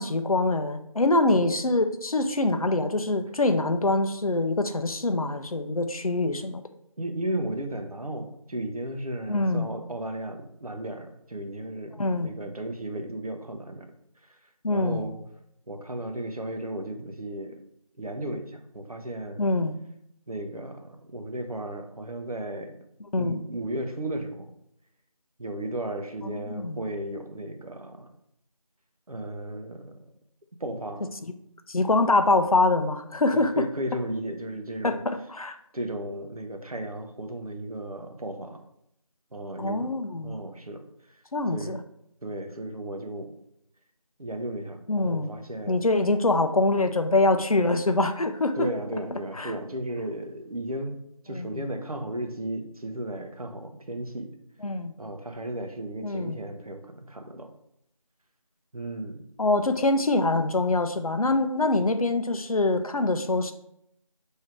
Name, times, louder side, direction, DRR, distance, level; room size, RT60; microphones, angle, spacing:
voice 1, 0.0-6.6 9.3-9.7 12.0-12.3 14.6-15.0 19.4-19.7 23.1-23.4 26.2-26.8 31.7-33.6 34.8-35.6 39.6-40.4 41.3-41.8 44.9-45.3 45.7-48.7 49.4-49.5 51.3-51.6 54.6-54.9 56.0-56.4 59.4-63.5, left 2 dB, 75° left, 8 dB, 0.5 m, -24 dB
voice 2, 7.0-11.9 12.2-13.9 14.2-14.4 14.7-15.2 15.7-17.6 18.0-19.4 20.3-22.8 23.2-24.5 25.4-28.1 29.1-30.0 30.6-31.1 33.3-35.0 35.7-38.6 39.3-39.9 40.2-40.8 41.1-41.2 41.5-41.8 42.2-43.3 44.2-45.8 48.5-51.0 51.2-54.3 55.0-57.5 58.7-59.2, right 1 dB, 85° right, 5 dB, 0.7 m, -34 dB
3.2 x 2.7 x 4.5 m, 0.76 s
figure-of-eight pair, 175°, 18 cm